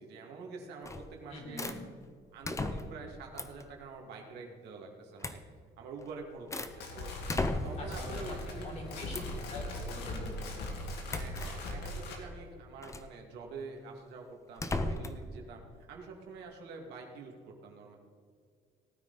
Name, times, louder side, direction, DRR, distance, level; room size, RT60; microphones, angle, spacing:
voice 1, 0.0-1.8 2.3-5.4 5.8-9.4 11.1-18.0, right 4 dB, 80° right, 1 dB, 2.3 m, -47 dB
sound 1, 0.8-1.2 1.6-1.8 2.4-3.0 3.4-3.7 5.2-5.4 6.0-6.8 7.3-7.9 9.1-9.4 11.1-11.5 12.8-13.1 14.6-15.2, left 2 dB, 15° left, 0.8 m, -36 dB
voice 2, 1.3-1.7 7.8-8.3 8.6-10.5, left 1 dB, 40° left, 0 dB, 4.0 m, -44 dB
sound 2, 6.6-12.2, left 1 dB, 80° left, 2.3 m, -40 dB
18.5 x 9.2 x 4.1 m, 2.1 s
cardioid pair, 110°, 17 cm